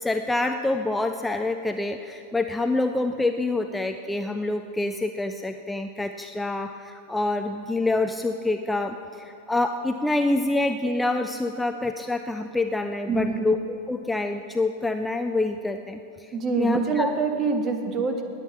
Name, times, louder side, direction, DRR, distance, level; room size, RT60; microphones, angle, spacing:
voice 1, 0.0-17.1, left 2 dB, 5° left, 7 dB, 0.5 m, -26 dB
voice 2, 13.1-13.5 16.3-18.2, right 4 dB, 30° right, 5 dB, 1.5 m, -25 dB
19.5 x 8.3 x 5.9 m, 2.6 s
figure-of-eight pair, 90°, 0 cm